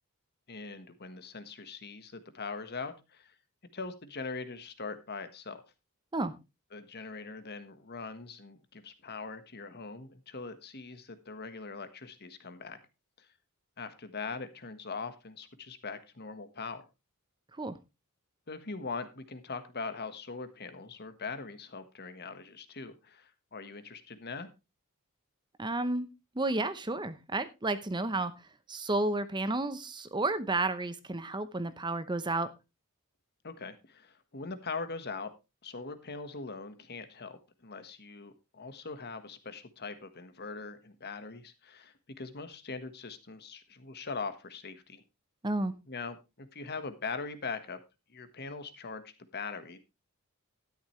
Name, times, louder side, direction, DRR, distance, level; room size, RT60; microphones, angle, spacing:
voice 1, 0.5-3.3 3.7-5.6 6.7-12.8 13.2-13.3 13.8-16.8 18.5-24.5 33.4-35.3 35.6-45.0 45.9-47.8 48.1-49.8, left 4 dB, 45° left, 10 dB, 1.4 m, -41 dB
voice 2, 25.6-26.1 26.4-28.3 28.7-32.5 45.4-45.7, right 2 dB, 20° right, 12 dB, 0.8 m, -31 dB
12.0 x 10.5 x 3.2 m, 0.25 s
head